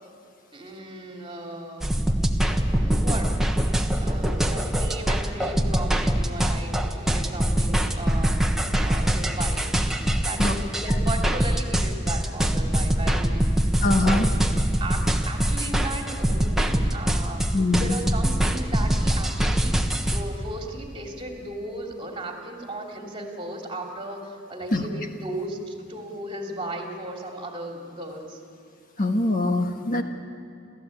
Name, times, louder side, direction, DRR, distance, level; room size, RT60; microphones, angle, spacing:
voice 1, 0.5-2.2 2.4-3.6 4.0-14.4 14.8-28.4, right 1 dB, 25° right, 1 dB, 2.9 m, -36 dB
sound 1, 1.8-20.2, right 1 dB, ahead, 1.2 m, -23 dB
voice 2, 13.8-14.3 17.5-18.0 24.7-24.8 29.0-30.0, left 2 dB, 45° left, 4 dB, 1.4 m, -23 dB
30.0 x 14.5 x 8.5 m, 2.4 s
head